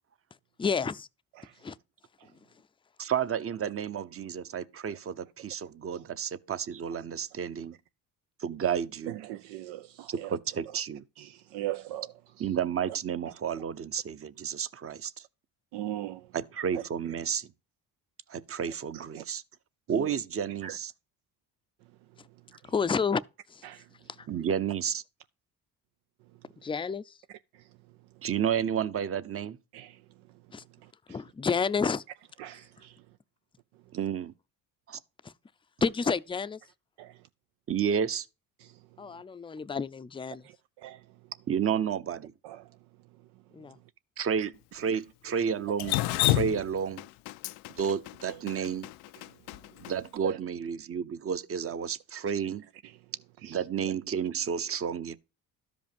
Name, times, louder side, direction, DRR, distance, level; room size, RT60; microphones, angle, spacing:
voice 1, 0.6-1.1 1.6-1.7 22.7-23.2 23.5-23.6 26.6-27.1 30.5-30.6 31.1-32.0 35.8-36.6 39.0-40.4 43.5-43.8, left 5 dB, 15° left, 0.5 m, -29 dB
voice 2, 3.0-7.7 8.4-9.2 10.1-11.0 12.4-15.2 16.3-17.5 18.3-19.4 19.9-20.9 24.3-25.0 28.2-29.6 33.9-34.3 34.9-35.0 37.7-38.3 41.5-42.3 44.2-46.0 46.3-47.0 47.7-48.9 49.8-52.6 53.4-55.2, right 7 dB, 35° right, 0.8 m, -31 dB
voice 3, 9.1-10.3 11.2-12.5 13.3-13.4 15.7-16.3 16.7-16.8 18.9-19.2 19.9-20.1 20.6-20.8 23.6-23.9 27.5-27.7 29.7-30.0 30.8-31.2 32.4-33.0 37.0-37.2 38.6-38.8 40.4-41.0 42.4-42.7 44.4-44.5 44.8-44.9 45.2-45.4 48.3-48.7 50.2-50.4 52.8-53.0 53.4-53.6, right 14 dB, 85° right, 0.6 m, -40 dB
Drip, 45.8-49.9, left 17 dB, 90° left, 0.6 m, -29 dB
12.5 x 5.3 x 5.2 m
supercardioid pair, 85°, 38 cm